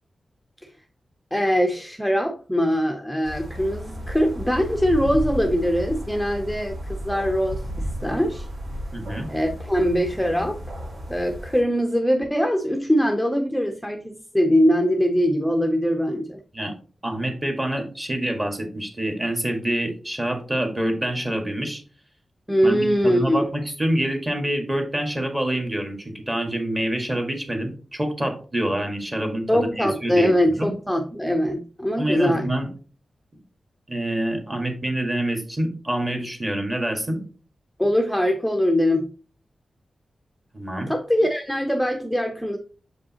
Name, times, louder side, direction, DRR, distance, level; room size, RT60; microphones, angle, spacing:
voice 1, 1.3-8.5 9.3-10.6 11.1-16.4 22.5-23.4 29.5-32.5 37.8-39.1 40.9-42.6, equal, ahead, 3 dB, 0.6 m, -22 dB
sound 1, 3.2-11.6, equal, 65° right, 2.6 m, -33 dB
voice 2, 8.9-9.3 16.5-16.7 17.0-21.8 22.6-30.3 30.6-30.7 32.0-32.7 33.9-37.2 40.5-40.9, right 1 dB, 20° right, 4 dB, 1.6 m, -26 dB
7.0 x 5.2 x 2.8 m, 0.39 s
wide cardioid pair, 120°, 0 cm